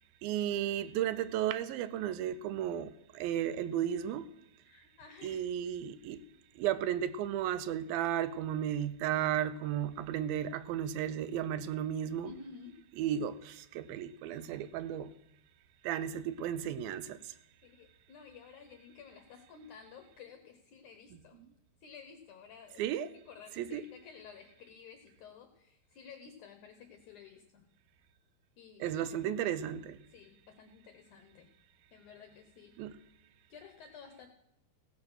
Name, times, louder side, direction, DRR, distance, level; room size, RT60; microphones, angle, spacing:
voice 1, 0.2-4.3 5.2-6.2 6.6-12.3 13.0-15.1 15.8-17.3 22.8-23.1 23.6-23.8 28.8-30.0 32.8-33.0, right 10 dB, 80° right, 2.2 m, -34 dB
voice 2, 4.6-5.6 12.2-12.8 14.2-14.6 17.6-21.4 21.8-27.7 28.6-29.3 30.1-31.5 31.9-32.9 33.5-34.3, left 6 dB, 75° left, 1.8 m, -53 dB
16.5 x 7.6 x 6.3 m
omnidirectional pair, 4.5 m